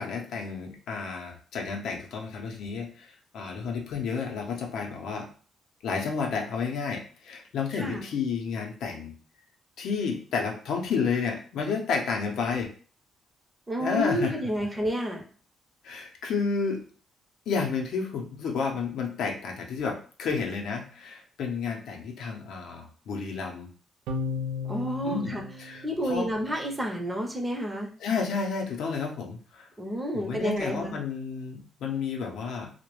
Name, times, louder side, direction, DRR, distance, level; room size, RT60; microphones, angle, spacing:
voice 1, 0.0-5.3 5.8-9.1 9.8-12.7 13.8-14.3 15.8-16.8 17.5-23.7 25.0-25.3 25.6-26.3 28.0-29.7 30.1-32.7, left 5 dB, 75° left, 1 dB, 0.5 m, -31 dB
voice 2, 7.7-8.0 13.7-15.2 24.7-25.4 25.8-27.9 29.8-30.9, equal, 15° right, 2 dB, 0.6 m, -30 dB
sound 1, 24.1-26.7, left 4 dB, 90° right, 0.4 m, -35 dB
2.2 x 2.0 x 3.0 m, 0.41 s
cardioid pair, 90°, 0 cm